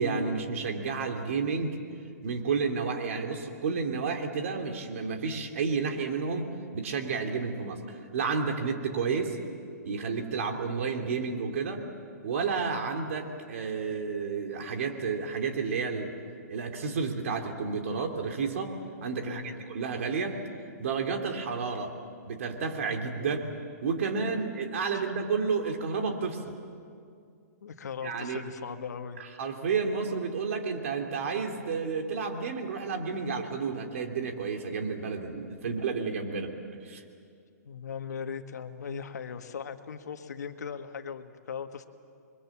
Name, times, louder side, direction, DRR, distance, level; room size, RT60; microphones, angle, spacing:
voice 1, 0.0-1.8 2.2-6.5 6.7-7.8 8.1-9.4 9.8-11.8 12.2-16.1 16.5-18.7 19.0-20.4 20.8-21.9 22.2-23.4 23.8-26.5 28.0-28.4 29.2-36.5 36.8-37.0, right 5 dB, 50° right, 4 dB, 3.0 m, -31 dB
voice 2, 19.2-19.6 23.2-23.3 24.9-25.0 27.6-29.2 35.6-35.8 37.6-41.8, left 6 dB, 70° left, 7 dB, 1.7 m, -39 dB
29.5 x 23.5 x 7.4 m, 2.3 s
hypercardioid pair, 165°, 9 cm